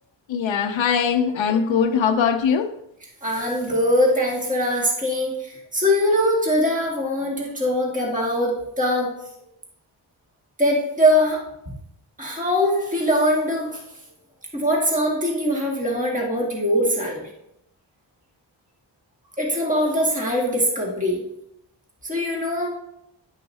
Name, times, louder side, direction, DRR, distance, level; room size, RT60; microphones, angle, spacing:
voice 1, 0.3-2.7, left 7 dB, 85° left, 0.6 m, -21 dB
voice 2, 3.2-9.1 10.6-11.4 12.2-13.7 14.5-17.2 19.4-21.2 22.0-22.7, equal, 15° right, 1.9 m, -22 dB
10.5 x 5.6 x 2.7 m
cardioid pair, 65°, 45 cm